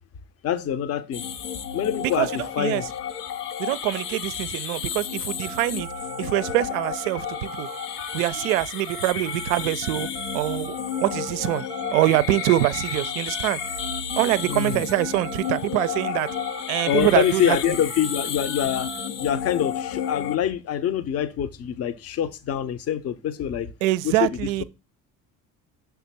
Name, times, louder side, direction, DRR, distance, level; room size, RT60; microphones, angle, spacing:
voice 1, 0.4-1.2 1.7-2.8 8.1-8.2 14.5-14.9 16.9-18.9 19.2-23.7 24.0-24.3, left 10 dB, 30° left, 0.7 m, -25 dB
sound 1, 1.1-20.4, left 8 dB, 75° left, 0.7 m, -32 dB
voice 2, 2.0-2.8 3.6-5.9 6.2-7.7 8.1-10.1 10.3-10.7 11.0-11.6 11.9-13.6 14.2-16.3 16.7-17.6 23.8-24.6, right 16 dB, 60° right, 0.5 m, -24 dB
sound 2, 5.4-15.6 15.8-19.1, right 5 dB, 10° right, 0.6 m, -40 dB
5.8 x 3.5 x 5.7 m
figure-of-eight pair, 55°, 47 cm